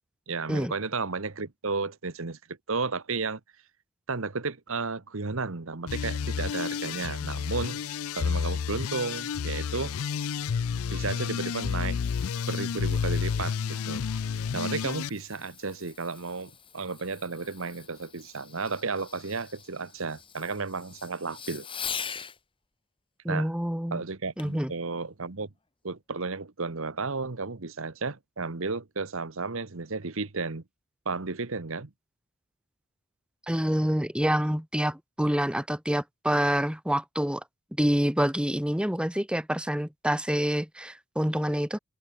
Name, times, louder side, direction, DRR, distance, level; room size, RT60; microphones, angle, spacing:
voice 1, 0.3-2.4 2.7-3.4 4.1-7.8 8.2-9.9 10.9-12.0 12.5-14.0 14.5-21.7 23.3-23.5 23.9-25.5 25.8-30.6 31.0-31.9, right 4 dB, 60° right, 1.2 m, -33 dB
sound 1, 5.9-15.1, left 6 dB, 75° left, 0.4 m, -30 dB
Fireworks, 11.4-22.4 24.4-24.7 25.3-25.4, left 7 dB, 25° left, 3.2 m, -44 dB
voice 2, 23.2-24.0 24.4-24.7 33.5-37.4 37.8-41.8, equal, 5° right, 1.3 m, -27 dB
head